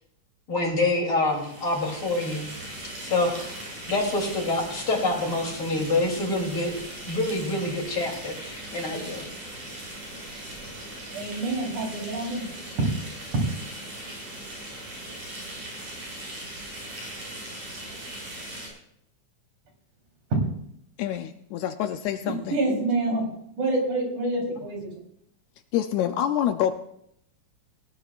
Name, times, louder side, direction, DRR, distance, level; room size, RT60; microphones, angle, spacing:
voice 1, 0.5-2.5 3.0-3.5 3.9-6.8 7.1-9.3, left 2 dB, 45° left, 0 dB, 3.8 m, -26 dB
sound 1, 1.2-18.7, right 1 dB, 90° right, 7.6 m, -39 dB
voice 2, 11.1-12.5 22.2-23.2 23.6-24.9, right 2 dB, 70° right, -1 dB, 5.0 m, -27 dB
voice 3, 21.0-22.6 25.7-26.7, left 10 dB, 75° left, 8 dB, 1.9 m, -26 dB
19.5 x 17.0 x 2.5 m, 0.72 s
omnidirectional pair, 3.5 m